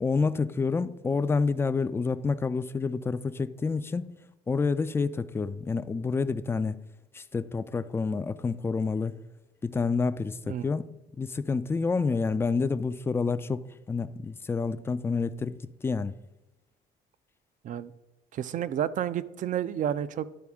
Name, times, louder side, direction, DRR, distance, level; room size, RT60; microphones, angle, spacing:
voice 1, 0.0-4.1 4.5-6.8 7.1-9.2 9.6-10.9 11.2-16.2, left 4 dB, 15° left, 0.3 m, -28 dB
voice 2, 18.3-20.3, right 10 dB, 50° right, 0.4 m, -30 dB
11.0 x 4.2 x 3.5 m
cardioid pair, 110°, 17 cm